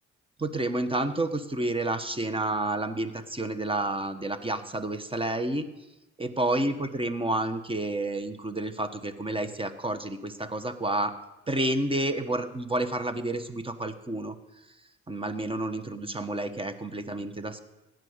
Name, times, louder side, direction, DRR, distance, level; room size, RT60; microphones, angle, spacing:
voice 1, 0.4-5.7 6.2-11.1 11.5-14.4 15.1-17.6, right 1 dB, 20° right, 10 dB, 1.2 m, -30 dB
16.5 x 9.2 x 6.6 m, 0.98 s
cardioid pair, 90°, 30 cm